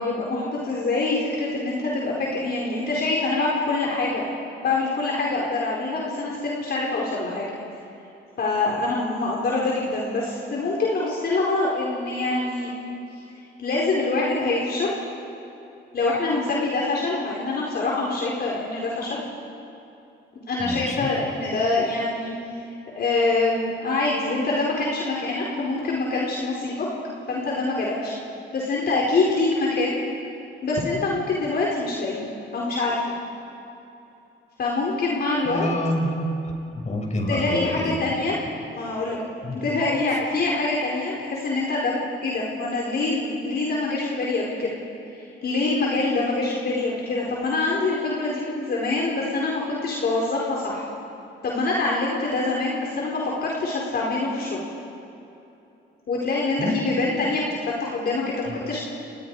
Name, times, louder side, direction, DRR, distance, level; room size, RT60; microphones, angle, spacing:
voice 1, 0.0-4.2 4.6-7.5 8.4-12.7 13.6-14.9 15.9-19.2 20.5-22.3 22.9-26.9 27.3-28.2 28.5-30.0 30.6-32.2 32.5-32.9 34.6-35.7 37.3-38.4 38.7-39.2 39.5-44.8 45.1-50.9 51.4-54.6 56.1-58.8, left 3 dB, 55° left, -4 dB, 4.7 m, -25 dB
voice 2, 20.6-21.1 35.4-36.1 36.7-38.1 39.4-39.7 56.6-57.1 58.5-58.6, left 1 dB, 35° left, 1 dB, 6.3 m, -27 dB
30.0 x 29.5 x 5.0 m, 2.9 s
cardioid pair, 90°, 20 cm